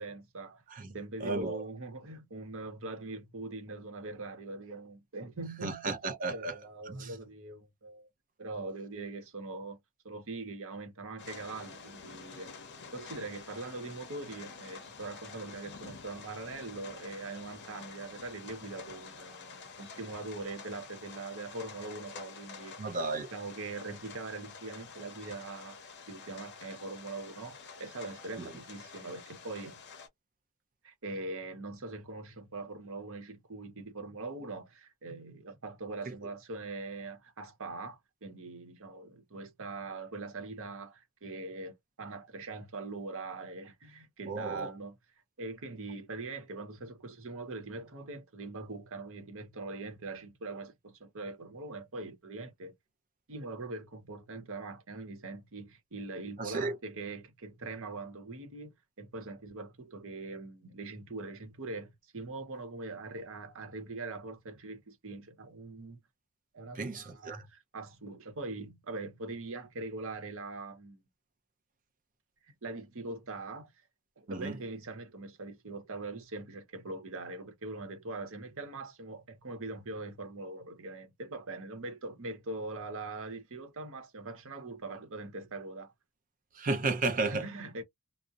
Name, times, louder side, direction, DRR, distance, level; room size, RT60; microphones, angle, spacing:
voice 1, 0.0-0.6 0.9-6.0 6.3-8.1 8.4-9.8 10.0-12.5 12.9-22.9 23.3-29.8 30.8-44.9 45.4-52.7 53.3-66.0 66.5-71.0 72.6-73.7 74.2-85.9 87.2-87.8, right 3 dB, 60° right, 0.8 m, -42 dB
voice 2, 0.7-1.6 5.6-6.6 6.9-7.2 22.8-23.3 28.4-28.5 36.1-36.2 44.3-44.7 56.4-56.8 66.7-67.5 74.3-74.6 86.5-87.5, right 3 dB, 40° right, 0.5 m, -34 dB
sound 1, 11.2-30.1, left 5 dB, 50° left, 0.7 m, -49 dB
2.6 x 2.0 x 2.3 m
head